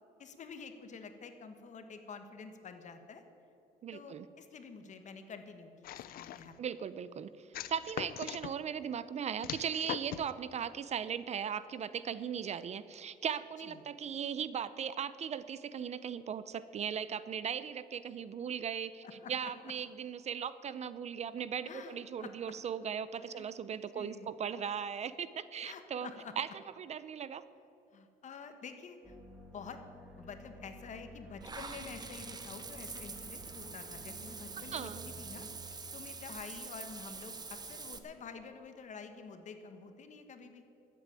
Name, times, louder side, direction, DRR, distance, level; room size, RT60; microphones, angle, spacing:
voice 1, 0.2-3.2 3.9-6.6 13.7-13.8 19.0-19.7 21.6-22.5 23.3-23.5 23.9-24.3 25.6-26.3 27.9-29.1 29.5-29.8 30.2-40.6, left 5 dB, 45° left, 8 dB, 1.4 m, -49 dB
voice 2, 3.8-4.3 6.6-19.0 19.3-26.1 26.4-26.5 26.8-27.4 34.7-35.1, right 8 dB, 40° right, 15 dB, 0.5 m, -38 dB
sound 1, 5.8-6.6 7.5-8.5 9.4-10.3, left 12 dB, 60° left, 0.6 m, -41 dB
sound 2, 29.0-35.7, equal, 5° right, 2.1 m, -52 dB
Water / Bathtub (filling or washing), 31.4-38.0, right 4 dB, 25° right, 1.0 m, -45 dB
13.0 x 8.4 x 8.9 m, 2.9 s
cardioid pair, 110°, 17 cm